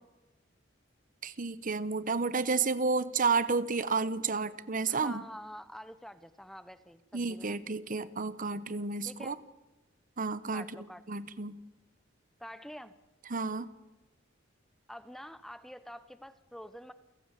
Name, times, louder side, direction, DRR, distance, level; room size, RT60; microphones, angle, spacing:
voice 1, 1.2-5.2 7.1-9.4 10.2-11.6 13.3-13.7, right 4 dB, 45° right, 15 dB, 1.0 m, -31 dB
voice 2, 4.9-7.5 9.0-9.4 10.5-11.0 12.4-12.9 14.9-16.9, equal, ahead, 13 dB, 0.8 m, -47 dB
28.5 x 16.5 x 8.3 m, 1.1 s
head